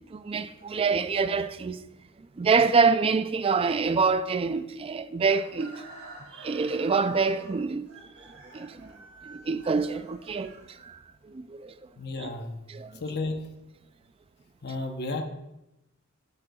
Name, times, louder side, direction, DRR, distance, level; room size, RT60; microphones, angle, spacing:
voice 1, 0.1-1.8 2.4-5.8 6.4-7.9 8.5-8.9 9.3-10.5 10.8-11.0 11.3-11.7 12.2-12.3 12.7-13.0, right 4 dB, 25° right, 0.3 m, -26 dB
Chicken rooster, 5.2-11.2, right 2 dB, 75° right, 3.0 m, -49 dB
voice 2, 12.0-12.6 13.0-13.6 14.6-15.2, left 2 dB, 50° left, 0.9 m, -33 dB
10.5 x 7.8 x 2.3 m
head